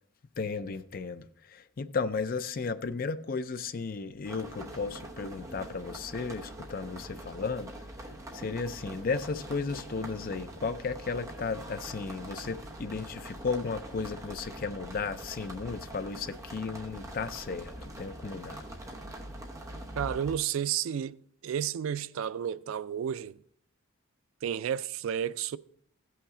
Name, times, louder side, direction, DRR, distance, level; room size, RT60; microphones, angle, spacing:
voice 1, 0.4-7.7 8.0-18.6, left 4 dB, 40° left, 0.4 m, -34 dB
sound 1, 4.2-20.4, right 1 dB, 15° right, 0.9 m, -43 dB
voice 2, 20.0-23.4 24.4-25.6, right 9 dB, 70° right, 0.3 m, -32 dB
15.5 x 5.7 x 3.7 m
head